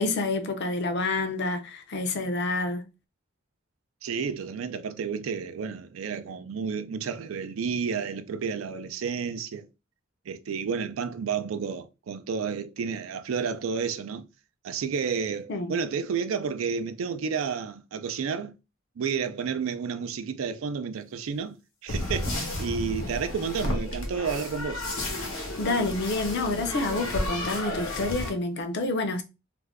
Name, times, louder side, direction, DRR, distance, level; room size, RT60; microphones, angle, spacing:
voice 1, 0.0-2.9 15.5-15.7 25.6-29.2, left 2 dB, 55° left, 0.5 m, -28 dB
voice 2, 4.0-9.7 10.3-14.3 14.6-18.6 19.0-21.6 21.8-24.8, right 6 dB, 90° right, 0.4 m, -31 dB
sound 1, 21.9-28.3, left 1 dB, 90° left, 1.0 m, -32 dB
2.4 x 2.2 x 3.4 m
head